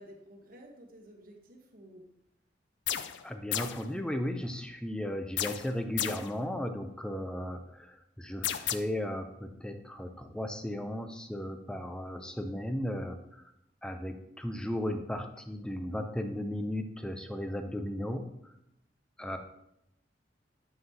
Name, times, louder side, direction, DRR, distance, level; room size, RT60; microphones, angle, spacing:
voice 1, 0.0-2.1 19.2-19.4, equal, 50° right, 2 dB, 1.1 m, -52 dB
sound 1, 2.9-3.2 3.5-3.9 5.4-6.3 8.4-8.7, left 11 dB, 75° left, 0.4 m, -33 dB
voice 2, 3.2-13.4 13.8-18.3 19.2-19.4, left 1 dB, 5° left, 7 dB, 0.4 m, -35 dB
7.7 x 5.6 x 2.8 m, 0.82 s
head